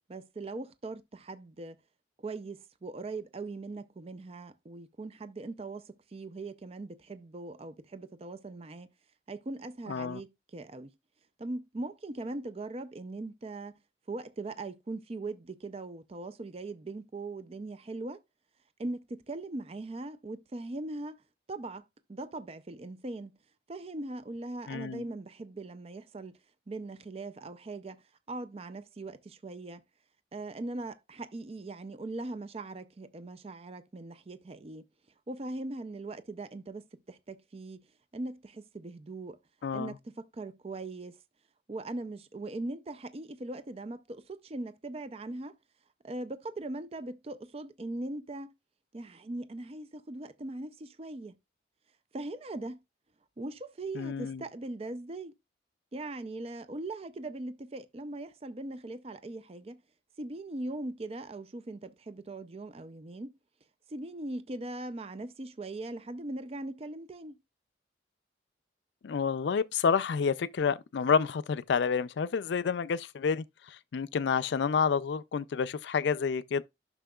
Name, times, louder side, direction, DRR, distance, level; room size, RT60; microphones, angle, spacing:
voice 1, 0.1-1.8 2.2-8.9 9.3-10.9 11.4-13.8 14.1-18.2 18.8-21.2 21.5-23.4 23.7-26.4 26.7-29.8 30.3-34.8 35.3-37.8 38.1-39.4 39.7-41.2 41.7-45.6 46.0-48.5 48.9-51.4 52.1-52.8 53.4-55.3 55.9-59.8 60.2-63.3 63.9-67.4, right 2 dB, 35° right, 0.4 m, -40 dB
voice 2, 9.9-10.2 24.7-25.0 39.6-39.9 54.0-54.4 69.0-73.4 73.9-76.6, left 6 dB, 75° left, 0.4 m, -29 dB
11.0 x 6.1 x 2.3 m
head